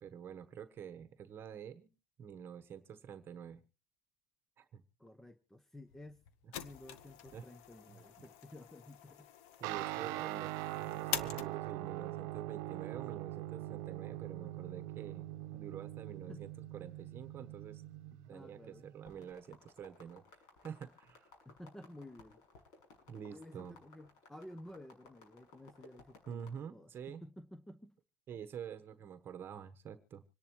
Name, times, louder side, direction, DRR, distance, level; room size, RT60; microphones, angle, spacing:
voice 1, 0.0-1.9 2.2-3.6 4.6-4.8 7.3-7.4 7.9-8.0 9.6-15.3 15.5-17.8 18.3-20.2 20.6-21.3 23.1-23.8 26.3-27.2 28.3-30.2, right 8 dB, 35° right, 10 dB, 1.1 m, -48 dB
voice 2, 5.0-6.2 6.6-9.3 16.3-16.5 18.3-18.9 21.4-22.4 23.2-28.0, left 1 dB, 5° left, 11 dB, 0.7 m, -53 dB
sound 1, 5.9-11.9, left 10 dB, 85° left, 1.2 m, -46 dB
Guitar, 9.6-19.3, right 16 dB, 70° right, 0.8 m, -42 dB
sound 2, 19.0-26.6, left 4 dB, 65° left, 6.7 m, -60 dB
26.0 x 10.5 x 3.1 m, 0.33 s
cardioid pair, 145°, 7 cm